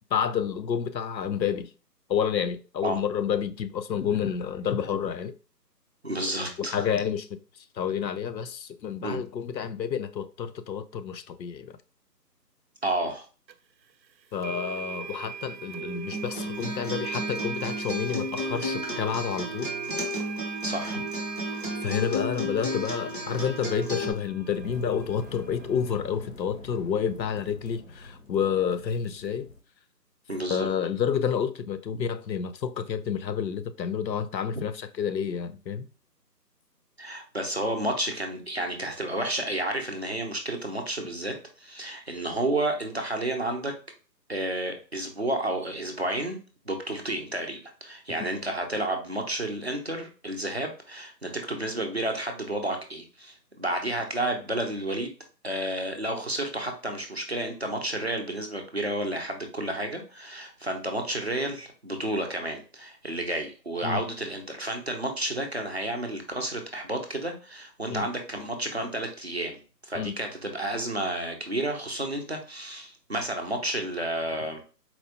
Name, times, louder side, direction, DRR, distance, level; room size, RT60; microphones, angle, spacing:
voice 1, 0.1-1.7 2.1-5.3 6.6-7.4 7.8-11.7 14.3-19.7 21.8-29.5 30.5-35.9 63.8-64.0 67.9-68.1 69.9-70.1, left 7 dB, 85° left, 0.6 m, -29 dB
voice 2, 6.0-6.9 9.0-9.2 12.8-13.2 20.6-21.0 30.3-30.7 37.0-43.7 44.3-46.4 46.7-55.1 55.4-74.6, right 1 dB, 40° right, 0.5 m, -31 dB
sound 1, 13.5-13.6 14.4-26.0, right 7 dB, 90° right, 0.6 m, -40 dB
Acoustic guitar, 16.1-24.1, left 1 dB, 30° left, 0.7 m, -33 dB
sound 2, 23.9-29.6, left 2 dB, 50° left, 1.0 m, -46 dB
4.2 x 2.2 x 2.8 m
figure-of-eight pair, 160°, 50 cm